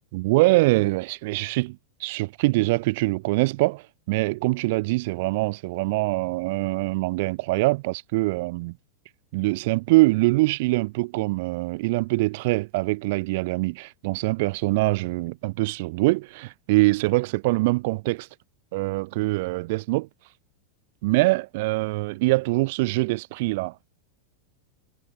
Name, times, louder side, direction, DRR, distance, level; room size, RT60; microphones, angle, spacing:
voice 1, 0.1-8.8 9.3-18.3 18.7-20.1 21.0-23.9, right 22 dB, 50° right, 4.7 m, -24 dB
figure-of-eight pair, 90°, 0 cm